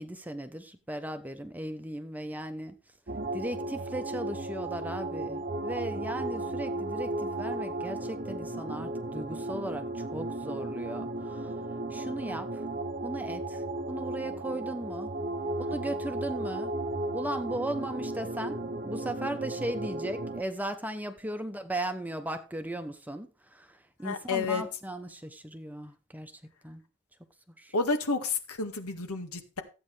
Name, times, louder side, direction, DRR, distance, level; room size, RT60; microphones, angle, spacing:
voice 1, 0.0-2.8 3.3-11.6 11.9-12.6 13.0-15.1 15.6-16.7 17.1-26.3 26.6-26.8 27.6-27.7, right 1 dB, 10° right, 0.9 m, -37 dB
sound 1, 3.1-20.4, right 2 dB, 40° right, 0.9 m, -35 dB
voice 2, 24.0-24.6 27.7-29.6, left 4 dB, 90° left, 2.0 m, -30 dB
14.5 x 8.7 x 3.4 m
head